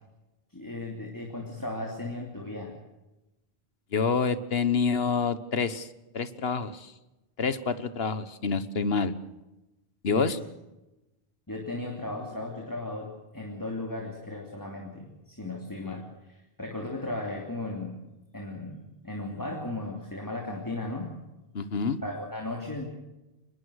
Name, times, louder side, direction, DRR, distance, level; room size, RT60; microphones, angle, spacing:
voice 1, 0.5-2.8 10.1-10.3 11.5-18.0 18.3-21.2 22.0-22.9, left 2 dB, 20° left, 1 dB, 3.0 m, -36 dB
voice 2, 3.9-5.9 6.1-6.9 7.4-9.1 10.0-10.4 21.5-22.0, left 5 dB, 70° left, 13 dB, 1.5 m, -27 dB
25.0 x 20.5 x 6.4 m, 1.0 s
omnidirectional pair, 1.1 m